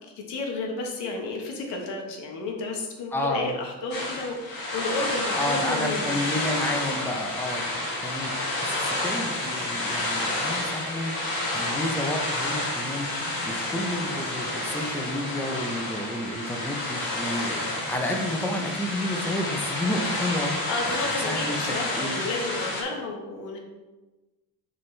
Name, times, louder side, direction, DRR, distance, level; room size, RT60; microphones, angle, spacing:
voice 1, 0.3-6.2 20.7-23.6, left 3 dB, 85° left, 1 dB, 1.4 m, -32 dB
voice 2, 3.1-3.5 5.4-20.5 20.9-22.2, left 1 dB, 5° left, 2 dB, 0.6 m, -31 dB
sound 1, 3.9-22.8, left 1 dB, 55° left, 1.8 m, -30 dB
7.2 x 4.4 x 3.3 m, 1.1 s
cardioid pair, 120°, 42 cm